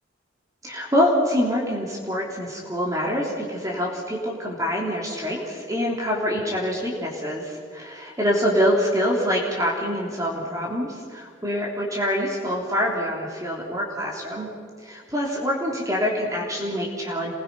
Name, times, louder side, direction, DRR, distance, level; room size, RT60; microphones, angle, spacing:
voice 1, 0.6-14.5 14.8-17.3, equal, 15° right, -3 dB, 3.3 m, -25 dB
28.0 x 21.5 x 5.5 m, 2.1 s
head